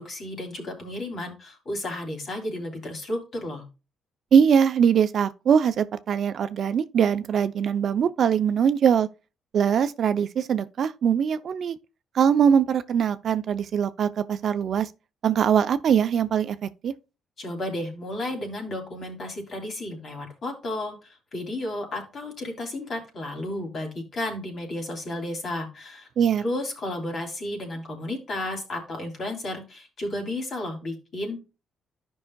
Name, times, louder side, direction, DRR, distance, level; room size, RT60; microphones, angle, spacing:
voice 1, 0.0-3.6 17.4-26.1 26.4-31.5, left 1 dB, 50° left, 3.0 m, -33 dB
voice 2, 4.3-9.1 9.5-11.8 12.1-14.9 15.2-16.9 26.2-26.4, right 7 dB, 60° right, 0.5 m, -22 dB
12.0 x 5.5 x 2.3 m
cardioid pair, 90°, 0 cm